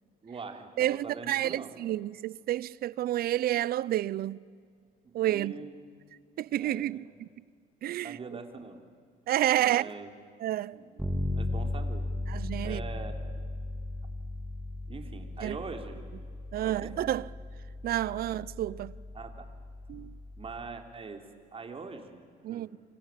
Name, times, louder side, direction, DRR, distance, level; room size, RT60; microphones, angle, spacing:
voice 1, 0.2-1.8 5.0-6.0 6.6-7.0 8.0-8.8 9.6-10.1 10.7-12.1 12.6-13.2 14.9-16.1 16.6-16.9 18.1-18.2 19.1-19.5 20.4-21.2 21.5-22.7, right 4 dB, 35° right, 3.6 m, -43 dB
voice 2, 0.8-4.4 5.1-5.5 6.4-7.3 7.8-8.2 9.3-9.9 10.4-10.8 12.3-12.8 15.4-15.6 16.5-17.3 17.8-18.9 19.9-20.2 22.4-22.8, right 13 dB, 65° right, 0.7 m, -30 dB
Bass guitar, 11.0-20.7, left 2 dB, 5° right, 3.9 m, -37 dB
28.5 x 25.0 x 7.6 m
cardioid pair, 100°, 17 cm